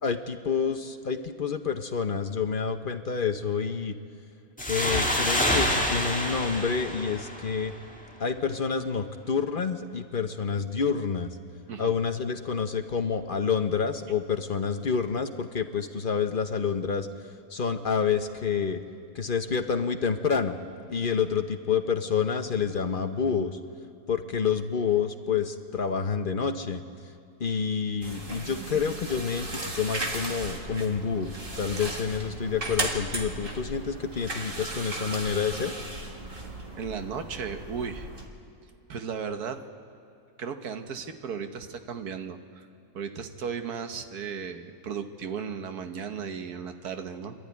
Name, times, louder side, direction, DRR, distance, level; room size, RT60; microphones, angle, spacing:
voice 1, 0.0-4.0 4.7-7.7 8.2-11.3 11.8-17.1 17.5-18.8 19.1-20.6 20.9-23.6 24.1-26.8 27.4-31.3 31.6-35.7, left 6 dB, 45° left, 7 dB, 0.8 m, -28 dB
sound 1, 4.6-8.0, equal, 5° left, 1.6 m, -27 dB
sound 2, 28.0-38.2, right 2 dB, 35° right, 1.9 m, -36 dB
voice 2, 36.8-38.1 38.9-39.6 40.4-42.7 42.9-47.3, right 6 dB, 80° right, 7 dB, 1.6 m, -35 dB
26.0 x 12.0 x 9.5 m, 2.5 s
omnidirectional pair, 1.6 m